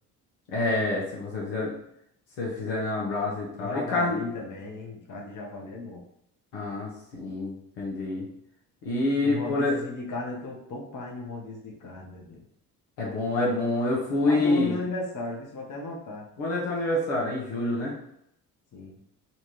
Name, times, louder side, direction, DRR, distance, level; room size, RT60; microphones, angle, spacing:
voice 1, 0.5-1.7 2.4-4.2 6.5-8.3 8.8-9.8 13.0-14.7 16.4-17.9, left 2 dB, 75° left, -4 dB, 1.1 m, -27 dB
voice 2, 3.5-6.0 9.2-12.5 14.3-16.3 18.7-19.0, left 3 dB, 45° left, -1 dB, 1.1 m, -35 dB
4.0 x 2.4 x 3.1 m, 0.74 s
hypercardioid pair, 50°, 45 cm